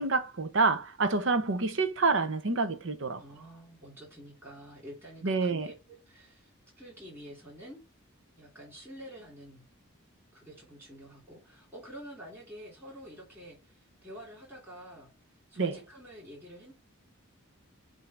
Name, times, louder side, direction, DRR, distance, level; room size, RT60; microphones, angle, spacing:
voice 1, 0.0-3.2 5.2-5.7 15.6-15.8, right 3 dB, 60° right, 0.8 m, -27 dB
voice 2, 3.2-6.5 6.8-7.8 8.3-9.7 10.3-15.1 15.5-16.7, equal, 10° right, 3.2 m, -48 dB
7.9 x 2.8 x 5.9 m
head